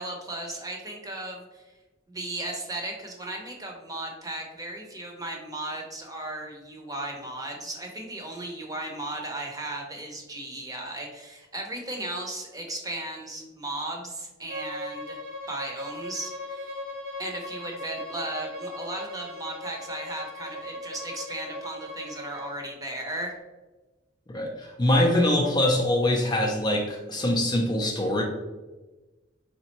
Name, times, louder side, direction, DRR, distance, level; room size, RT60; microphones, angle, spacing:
voice 1, 0.0-1.6 2.1-15.2 15.5-16.7 17.2-23.3, right 1 dB, 20° right, 1 dB, 0.7 m, -36 dB
Bowed string instrument, 14.5-22.5, left 1 dB, 75° right, 1.1 m, -38 dB
voice 2, 24.3-28.2, left 1 dB, 25° left, 1 dB, 0.5 m, -23 dB
4.2 x 3.7 x 2.9 m, 1.2 s
head